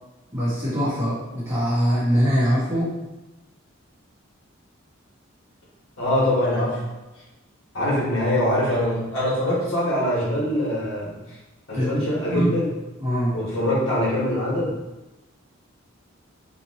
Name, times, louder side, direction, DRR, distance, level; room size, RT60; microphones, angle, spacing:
voice 1, 0.3-2.9 11.7-12.0 12.3-12.5 13.0-13.3, equal, 15° right, -11 dB, 1.2 m, -22 dB
voice 2, 6.0-6.8 7.7-11.2 11.7-12.7 13.3-14.8, left 1 dB, 75° left, -7 dB, 1.3 m, -23 dB
2.9 x 2.7 x 2.8 m, 1.1 s
head